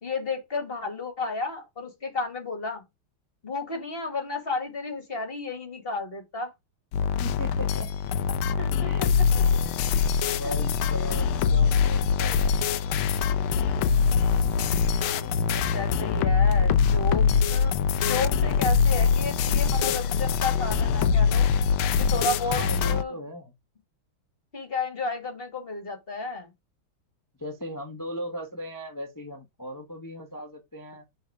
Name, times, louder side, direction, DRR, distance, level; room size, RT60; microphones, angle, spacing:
voice 1, 0.0-2.8 3.4-6.5 8.6-9.1 10.4-10.5 15.4-21.5 22.0-22.6 22.9-23.2 24.5-26.5, left 3 dB, 30° left, 2.1 m, -32 dB
sound 1, 6.9-23.0, left 6 dB, 90° left, 1.6 m, -23 dB
voice 2, 7.2-7.9 8.3-8.4 8.8-9.1 10.2-12.6 15.1-15.4 16.0-16.4 22.5-23.5 27.4-31.0, equal, 15° left, 0.9 m, -38 dB
6.4 x 4.1 x 4.8 m
omnidirectional pair, 2.3 m